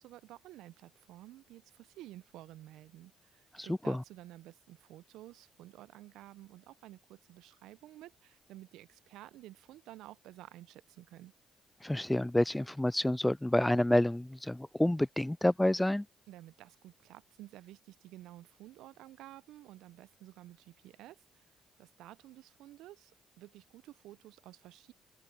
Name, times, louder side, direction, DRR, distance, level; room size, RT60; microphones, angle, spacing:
voice 1, 0.0-11.3 16.3-23.1 23.4-24.9, right 15 dB, 75° right, 1.0 m, -52 dB
voice 2, 3.6-4.0 11.8-16.0, left 1 dB, 10° left, 0.3 m, -29 dB
open air
hypercardioid pair, 45°, 0 cm